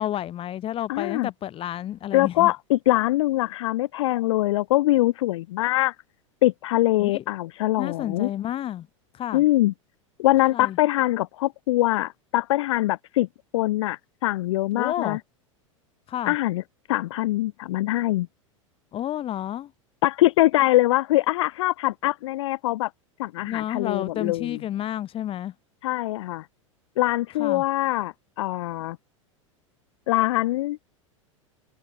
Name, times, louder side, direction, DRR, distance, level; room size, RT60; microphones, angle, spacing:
voice 1, 0.0-2.5 7.0-7.2 7.8-8.9 9.1-9.4 10.4-10.8 14.7-15.2 16.1-16.3 18.9-19.7 23.4-25.5 27.4-27.6, left 11 dB, 35° left, 1.8 m, -30 dB
voice 2, 0.9-1.3 2.1-6.0 6.4-8.3 9.3-9.7 10.2-13.3 13.5-15.2 16.2-16.6 16.9-18.3 20.0-22.9 23.2-24.6 25.8-26.5 27.0-29.0 30.1-30.8, left 17 dB, 65° left, 0.4 m, -23 dB
figure-of-eight pair, 90°, 17 cm